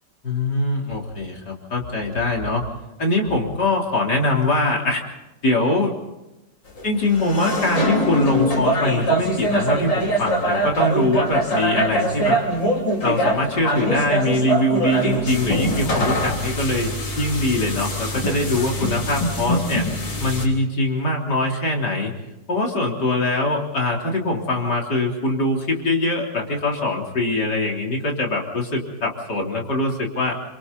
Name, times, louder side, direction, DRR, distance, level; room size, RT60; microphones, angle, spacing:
voice 1, 0.2-2.6 3.0-5.0 5.4-5.9 6.8-12.4 13.0-19.8 20.2-22.1 22.5-30.4, left 2 dB, 65° left, -1 dB, 4.3 m, -22 dB
sound 1, 6.8-6.9 7.1-20.5, equal, 85° left, 4.5 m, -23 dB
28.5 x 26.5 x 4.1 m, 0.96 s
omnidirectional pair, 1.9 m